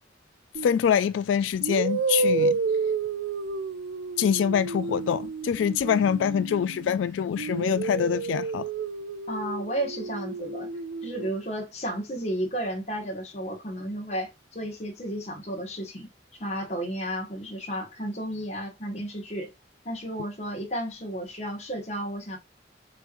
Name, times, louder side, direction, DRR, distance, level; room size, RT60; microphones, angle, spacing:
sound 1, 0.5-0.8 1.6-6.9 7.4-11.3, right 4 dB, 75° right, 0.4 m, -30 dB
voice 1, 0.6-2.6 4.2-8.7, left 8 dB, 85° left, 0.3 m, -25 dB
voice 2, 9.3-16.1 16.4-19.5 19.8-22.4, right 1 dB, 35° left, 1.5 m, -33 dB
6.7 x 3.1 x 2.5 m
head